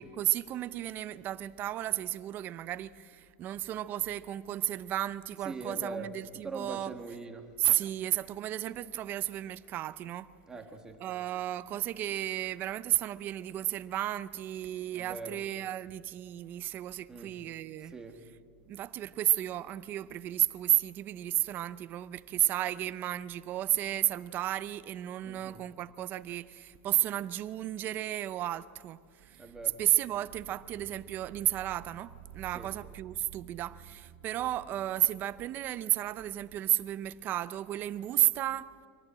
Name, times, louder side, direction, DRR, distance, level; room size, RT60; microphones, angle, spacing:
voice 1, 0.0-6.9 7.6-10.4 11.0-17.9 18.7-29.4 29.8-38.7, right 13 dB, 30° right, 0.6 m, -33 dB
voice 2, 5.4-6.1 6.4-7.5 10.5-11.0 14.9-15.4 17.1-17.5 17.8-18.2 25.2-25.6 29.4-29.8 32.5-32.7, right 3 dB, 10° right, 1.7 m, -42 dB
sound 1, 29.2-36.6, right 10 dB, 70° right, 2.2 m, -53 dB
25.0 x 18.0 x 8.9 m
supercardioid pair, 175°, 7 cm